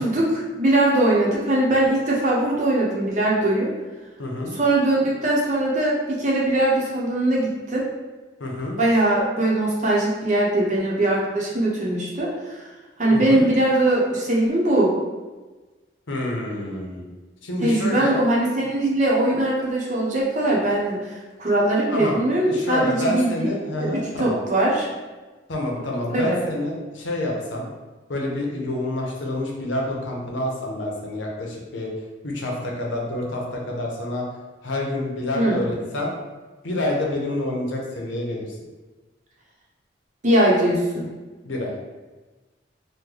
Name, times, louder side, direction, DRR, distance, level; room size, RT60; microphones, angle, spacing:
voice 1, 0.0-3.7 4.5-7.9 8.8-12.6 13.0-14.9 17.6-23.5 23.8-24.9 26.1-26.4 35.3-35.6 40.2-41.1, right 1 dB, 40° right, -4 dB, 0.7 m, -21 dB
voice 2, 4.2-4.5 8.4-8.7 13.1-13.5 16.1-17.0 17.4-18.2 21.9-22.2 22.5-24.4 25.5-27.7 28.1-31.9 32.2-34.2 34.6-36.1 36.6-38.5 41.4-41.7, left 1 dB, 85° left, -1 dB, 0.7 m, -27 dB
3.1 x 2.1 x 3.7 m, 1.2 s
head